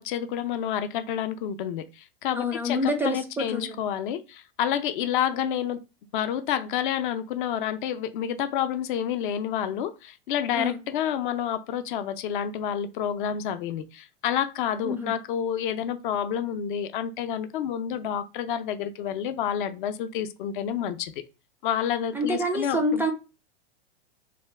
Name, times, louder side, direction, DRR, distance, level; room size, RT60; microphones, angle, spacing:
voice 1, 0.0-5.8 6.1-21.1 21.6-23.0, left 9 dB, 55° left, 0.6 m, -29 dB
voice 2, 2.3-3.8 10.5-10.8 14.8-15.1 22.1-23.1, left 1 dB, 5° right, 0.4 m, -27 dB
2.7 x 2.3 x 3.3 m
hypercardioid pair, 100°, 31 cm